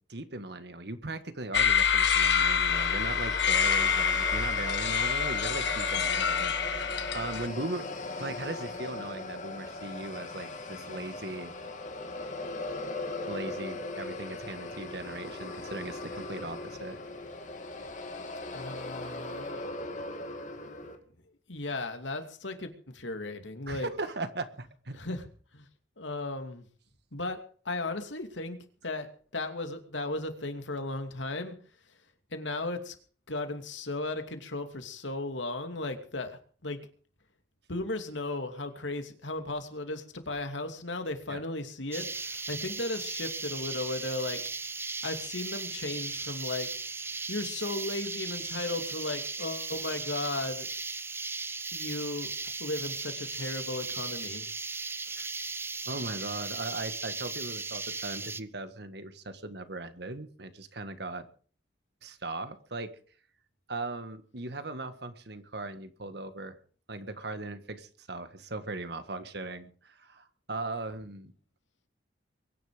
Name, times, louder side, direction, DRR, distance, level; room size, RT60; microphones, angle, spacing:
voice 1, 0.1-7.9 8.2-11.5 13.3-17.0 23.7-25.0 41.3-41.4 55.1-55.3 55.9-61.3 62.0-63.0 63.7-66.6 66.9-71.3, right 2 dB, 60° right, 10 dB, 1.7 m, -38 dB
sound 1, 1.5-7.5, left 7 dB, 70° left, 1.5 m, -26 dB
sound 2, 2.7-21.0, left 2 dB, 40° left, 2.7 m, -39 dB
voice 2, 18.5-20.1 21.5-23.9 24.9-25.2 25.5-25.7 26.0-26.6 27.1-28.6 28.8-31.6 32.3-33.0 33.3-36.8 37.7-44.4 45.0-46.7 47.3-50.7 51.7-52.3 52.6-54.5, left 2 dB, 90° left, 7 dB, 2.7 m, -36 dB
sound 3, 41.9-58.4, right 4 dB, 15° right, 0.6 m, -37 dB
23.0 x 10.5 x 5.1 m, 0.43 s
head